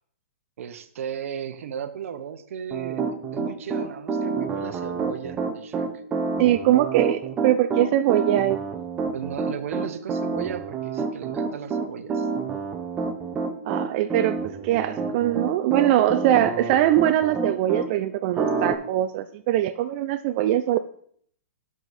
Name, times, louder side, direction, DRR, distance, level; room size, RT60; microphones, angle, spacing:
voice 1, 0.6-5.9 9.1-12.3, right 8 dB, 65° right, 10 dB, 0.8 m, -35 dB
Piano, 2.7-17.9 18.4-18.7, right 4 dB, 20° right, 0.8 m, -28 dB
voice 2, 6.4-8.6 13.7-20.8, right 13 dB, 40° right, 10 dB, 0.3 m, -22 dB
12.0 x 4.9 x 4.1 m, 0.62 s
hypercardioid pair, 135°, 8 cm